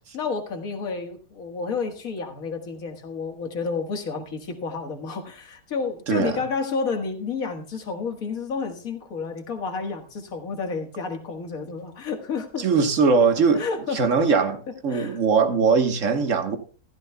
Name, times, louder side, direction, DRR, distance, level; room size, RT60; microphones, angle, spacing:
voice 1, 0.1-12.7 13.5-14.0 14.7-15.2, left 4 dB, 55° left, 1.9 m, -30 dB
voice 2, 6.1-6.4 12.6-13.6 13.9-16.6, right 5 dB, 50° right, 1.5 m, -21 dB
15.0 x 13.0 x 2.2 m
omnidirectional pair, 1.9 m